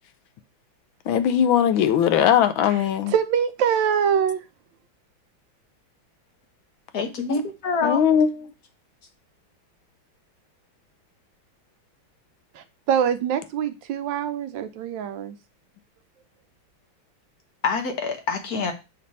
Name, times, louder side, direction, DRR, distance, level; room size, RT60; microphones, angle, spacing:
voice 1, 1.1-3.1 7.8-8.3, left 9 dB, 80° left, 1.4 m, -19 dB
voice 2, 3.1-4.4 12.5-15.4, right 8 dB, 75° right, 1.3 m, -24 dB
voice 3, 6.9-8.0 17.6-18.7, left 4 dB, 55° left, 1.3 m, -26 dB
6.6 x 3.4 x 5.3 m
omnidirectional pair, 2.2 m